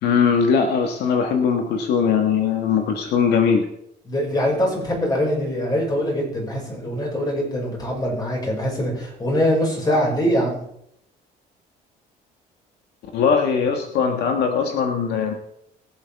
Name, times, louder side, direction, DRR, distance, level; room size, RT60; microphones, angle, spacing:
voice 1, 0.0-3.7 13.1-15.3, left 6 dB, 75° left, 4 dB, 1.6 m, -20 dB
voice 2, 4.1-10.6, equal, 25° left, -2 dB, 5.7 m, -23 dB
22.5 x 8.1 x 3.5 m, 0.74 s
cardioid pair, 110°, 17 cm